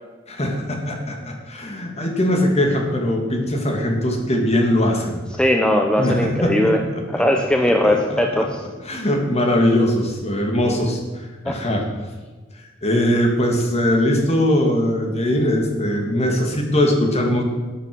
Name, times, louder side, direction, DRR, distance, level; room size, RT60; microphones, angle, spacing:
voice 1, 0.3-5.2 6.0-6.7 7.1-7.2 7.6-8.2 8.8-11.9 12.8-17.4, left 1 dB, 35° left, 2 dB, 2.4 m, -21 dB
voice 2, 5.4-6.8 7.1-8.6 11.5-11.6, left 1 dB, 5° left, 2 dB, 0.9 m, -19 dB
14.0 x 8.8 x 6.3 m, 1.3 s
head